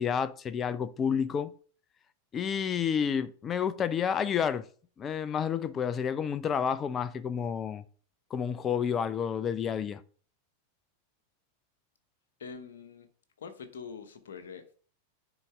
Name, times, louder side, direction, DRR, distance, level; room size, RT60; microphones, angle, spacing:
voice 1, 0.0-1.5 2.3-4.7 5.0-7.8 8.3-10.0, left 7 dB, 25° left, 0.5 m, -30 dB
voice 2, 12.4-13.1 13.4-14.7, left 6 dB, 65° left, 1.1 m, -44 dB
9.7 x 4.1 x 3.6 m
figure-of-eight pair, 90°, 0 cm